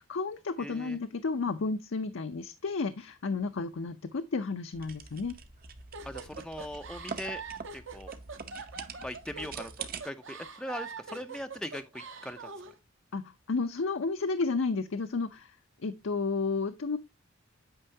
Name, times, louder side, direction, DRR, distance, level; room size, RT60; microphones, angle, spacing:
voice 1, 0.0-5.4 13.1-15.6 15.8-17.0, left 4 dB, 65° left, 0.6 m, -32 dB
voice 2, 0.6-1.0 6.1-7.4 7.7-8.1 9.0-12.5, left 1 dB, 5° left, 0.4 m, -40 dB
sound 1, 4.7-10.0, right 5 dB, 45° right, 0.8 m, -44 dB
sound 2, 5.9-12.7, right 5 dB, 65° right, 1.1 m, -43 dB
8.8 x 5.4 x 2.7 m
head